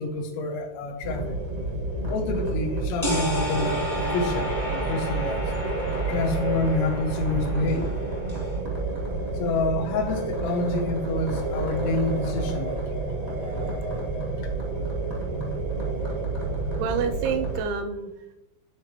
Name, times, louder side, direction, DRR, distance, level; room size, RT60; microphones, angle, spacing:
voice 1, 0.0-1.4 2.1-5.5 6.1-8.0 9.3-13.0 14.4-14.5, left 2 dB, 80° left, 4 dB, 2.9 m, -28 dB
sound 1, 1.0-17.6, right 2 dB, 60° right, 0.6 m, -29 dB
sound 2, 3.0-8.6, equal, 45° left, 0.5 m, -32 dB
voice 2, 16.8-18.4, right 6 dB, 85° right, 8 dB, 2.7 m, -29 dB
13.0 x 4.6 x 2.9 m, 0.98 s
omnidirectional pair, 5.5 m